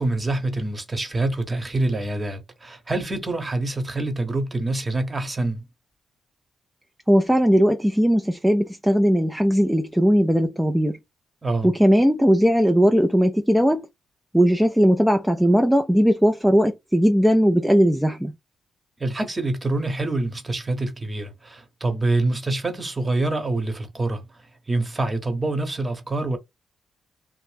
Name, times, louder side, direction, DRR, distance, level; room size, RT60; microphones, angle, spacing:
voice 1, 0.0-5.6 11.4-11.7 19.0-24.2 24.7-26.4, right 2 dB, 30° right, 1.0 m, -26 dB
voice 2, 7.1-11.0 11.6-13.9 14.3-18.3, equal, 5° right, 0.4 m, -18 dB
2.6 x 2.1 x 3.4 m
hypercardioid pair, 45°, 0 cm